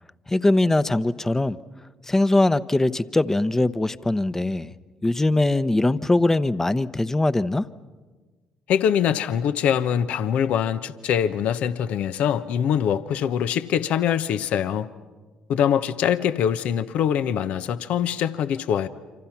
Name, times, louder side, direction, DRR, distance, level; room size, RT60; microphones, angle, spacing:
voice 1, 0.3-1.6 2.0-4.7 5.0-7.7, left 2 dB, 15° left, 0.9 m, -21 dB
voice 2, 8.7-14.9 15.5-18.9, left 9 dB, 70° left, 1.0 m, -23 dB
28.5 x 26.0 x 6.0 m
hypercardioid pair, 60°, 2 cm